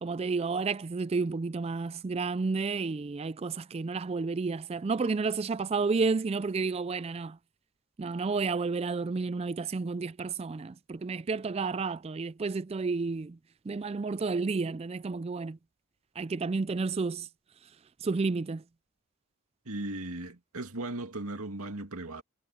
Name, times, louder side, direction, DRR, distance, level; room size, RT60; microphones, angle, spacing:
voice 1, 0.0-7.4 8.0-13.4 13.7-15.6 16.2-17.3 18.0-18.6, right 4 dB, 25° right, 0.3 m, -31 dB
voice 2, 19.7-22.2, right 2 dB, 80° right, 2.3 m, -37 dB
head